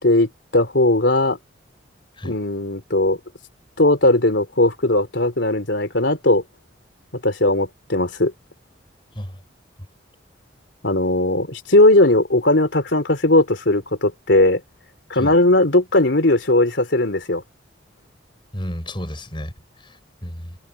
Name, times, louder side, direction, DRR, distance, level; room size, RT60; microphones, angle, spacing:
voice 1, 0.0-1.4 2.2-3.2 3.8-6.4 7.2-8.3 10.8-14.6 15.1-17.4, left 2 dB, 70° left, 3.4 m, -18 dB
voice 2, 18.5-20.6, equal, 25° left, 4.8 m, -32 dB
head